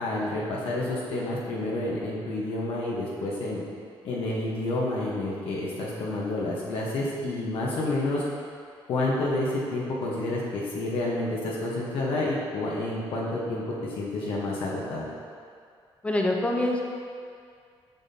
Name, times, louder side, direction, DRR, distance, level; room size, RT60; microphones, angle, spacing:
voice 1, 0.0-3.6 4.0-8.2 8.9-15.0, left 2 dB, 70° left, -5 dB, 1.1 m, -29 dB
voice 2, 16.0-16.8, left 1 dB, 10° left, 0 dB, 0.7 m, -25 dB
7.2 x 5.7 x 2.8 m, 2.2 s
cardioid pair, 110°, 10 cm